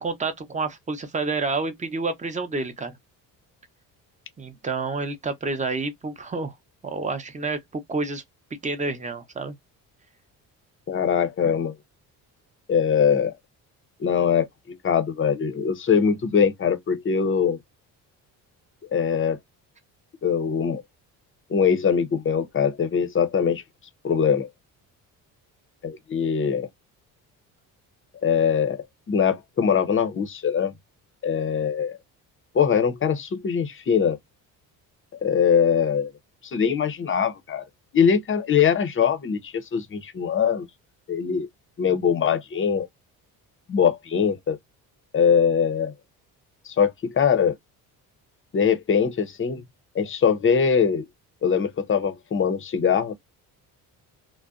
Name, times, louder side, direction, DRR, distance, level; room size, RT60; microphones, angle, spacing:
voice 1, 0.0-3.0 4.4-6.5 6.8-8.2 8.6-9.5, right 3 dB, 20° right, 0.7 m, -29 dB
voice 2, 10.9-11.8 12.7-13.3 14.0-17.6 18.9-19.4 20.2-20.8 21.5-23.6 24.0-24.5 25.8-26.7 28.2-30.7 31.2-32.0 32.5-34.2 35.2-36.1 36.4-37.6 37.9-40.7 41.1-41.5 41.8-42.9 43.7-44.6 45.1-45.9 46.7-47.6 48.5-49.6 49.9-51.1 51.4-53.1, left 7 dB, 30° left, 0.6 m, -22 dB
2.5 x 2.1 x 2.3 m
supercardioid pair, 80°, 39 cm